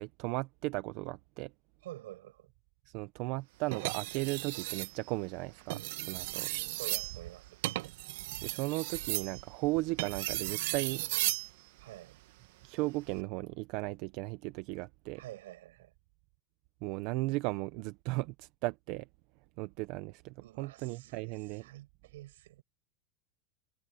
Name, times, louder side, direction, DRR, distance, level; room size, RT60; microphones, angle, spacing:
voice 1, 0.0-1.5 2.9-6.5 8.4-11.0 12.6-15.2 16.8-19.1 19.6-21.7, right 22 dB, 50° right, 0.7 m, -36 dB
voice 2, 1.8-2.5 6.7-7.6 11.8-12.2 15.2-15.9 20.4-22.6, right 15 dB, 85° right, 5.9 m, -49 dB
sound 1, 3.7-4.9 5.6-11.5 12.9-13.2, right 18 dB, 70° right, 1.2 m, -36 dB
supercardioid pair, 150°, 0 cm